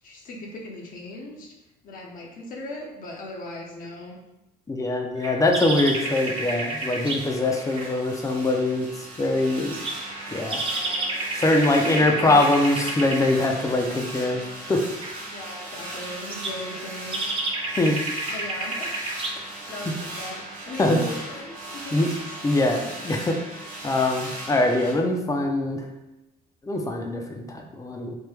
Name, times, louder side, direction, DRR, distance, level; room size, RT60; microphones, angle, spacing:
voice 1, 0.0-1.5 1.8-4.2 10.5-11.2 11.5-12.5 15.2-17.4 18.3-19.0 19.3-22.4, left 1 dB, 55° left, -2 dB, 0.7 m, -38 dB
voice 2, 4.7-9.8 10.3-10.6 11.4-14.4 14.7-14.8 17.8-18.0 20.8-21.0 21.9-22.1 22.4-23.4 23.8-25.8 26.6-28.2, left 2 dB, 20° left, 2 dB, 0.5 m, -23 dB
sound 1, 5.2-7.9 9.5-13.3 15.0-15.1 16.0-19.4, right 2 dB, 30° right, 0.5 m, -31 dB
sound 2, 5.7-24.9, right 1 dB, 55° right, 1.1 m, -38 dB
3.2 x 2.1 x 3.3 m, 0.96 s
cardioid pair, 110°, 17 cm